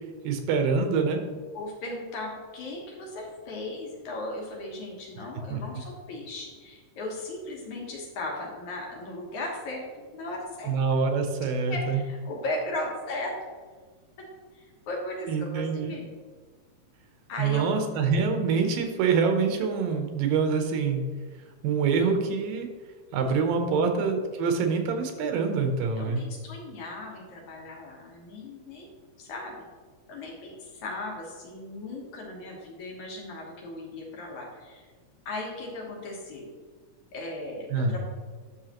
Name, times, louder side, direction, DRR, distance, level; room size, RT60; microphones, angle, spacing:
voice 1, 0.2-1.2 5.5-5.6 10.7-12.0 15.3-15.9 17.4-21.0 21.6-22.7 23.1-26.2 37.7-38.0, right 5 dB, 85° right, 5 dB, 2.6 m, -25 dB
voice 2, 1.5-10.7 11.6-13.3 14.2-14.3 14.5-16.1 17.3-17.7 23.6-24.0 25.9-28.9 29.2-29.6 30.1-34.9 35.3-36.5 37.1-38.0, left 2 dB, 65° left, -1 dB, 2.4 m, -37 dB
10.0 x 6.5 x 3.0 m, 1.5 s
omnidirectional pair, 4.0 m